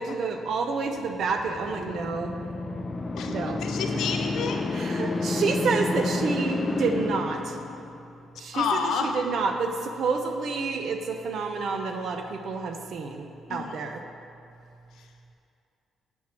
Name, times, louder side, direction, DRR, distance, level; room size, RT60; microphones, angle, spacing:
voice 1, 0.0-2.3 3.3-3.6 4.7-7.6 8.4-14.0, right 4 dB, 65° right, 5 dB, 0.5 m, -29 dB
sound 1, 1.1-8.1, left 2 dB, 30° left, 0.4 m, -30 dB
voice 2, 3.6-4.6 8.5-9.1 13.5-13.7, left 6 dB, 80° left, 4 dB, 0.6 m, -29 dB
7.2 x 6.2 x 3.0 m, 2.6 s
cardioid pair, 90°, 0 cm